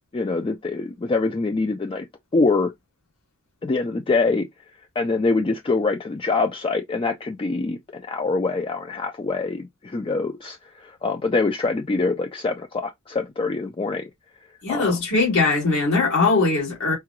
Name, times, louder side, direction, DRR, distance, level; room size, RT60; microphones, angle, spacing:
voice 1, 0.1-2.1 2.3-2.7 3.6-4.5 5.0-14.0 14.7-14.9, left 3 dB, 25° left, 0.3 m, -24 dB
voice 2, 14.6-17.0, left 3 dB, 80° left, 2.4 m, -20 dB
4.7 x 2.2 x 2.9 m
head